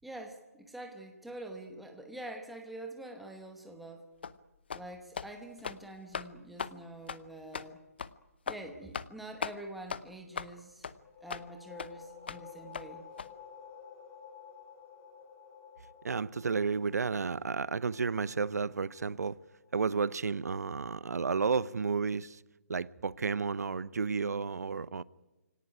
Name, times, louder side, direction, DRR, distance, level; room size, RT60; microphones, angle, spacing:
voice 1, 0.0-4.1 4.7-7.9 8.5-10.9 11.2-13.0, right 1 dB, ahead, 1.0 m, -46 dB
sound 1, 4.2-4.4 4.7-4.9 5.1-5.3 5.6-5.8 6.1-6.3 6.6-6.7 7.1-7.2 7.5-7.7 8.0-8.1 8.5-8.6 8.9-9.1 9.4-9.6 9.9-10.0 10.3-10.5 10.8-10.9 11.3-11.4 11.8-11.9 12.3-12.4 12.7-12.9 13.2-13.3, left 6 dB, 40° left, 0.8 m, -38 dB
sound 2, 10.9-20.3, left 7 dB, 15° left, 3.0 m, -53 dB
voice 2, 16.0-19.4 19.7-22.4 22.7-25.0, right 5 dB, 85° right, 0.8 m, -32 dB
24.5 x 18.0 x 10.0 m
hypercardioid pair, 180°, 9 cm